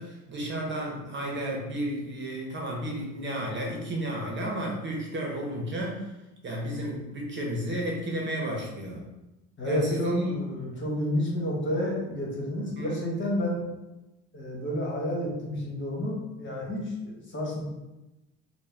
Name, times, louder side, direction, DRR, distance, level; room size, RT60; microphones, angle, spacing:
voice 1, 0.0-6.1 6.4-9.0 9.6-10.4 12.8-13.0, right 1 dB, 35° right, -1 dB, 1.1 m, -32 dB
voice 2, 9.6-13.6 14.3-17.6, left 1 dB, 35° left, -3 dB, 1.5 m, -30 dB
4.2 x 2.3 x 3.5 m, 1.0 s
supercardioid pair, 80°, 34 cm